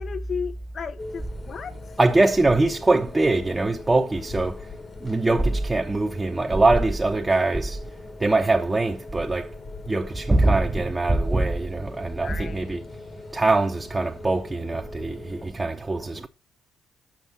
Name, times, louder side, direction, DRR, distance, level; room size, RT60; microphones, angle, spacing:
voice 1, 0.0-1.7 12.2-12.8, left 6 dB, 50° left, 0.6 m, -34 dB
sound 1, 1.0-15.5, left 3 dB, 35° left, 1.2 m, -41 dB
voice 2, 2.0-4.7 5.0-7.8 8.2-9.5 9.9-12.8 13.3-16.3, right 2 dB, 20° right, 0.8 m, -22 dB
7.3 x 5.7 x 6.1 m
cardioid pair, 80°, 0 cm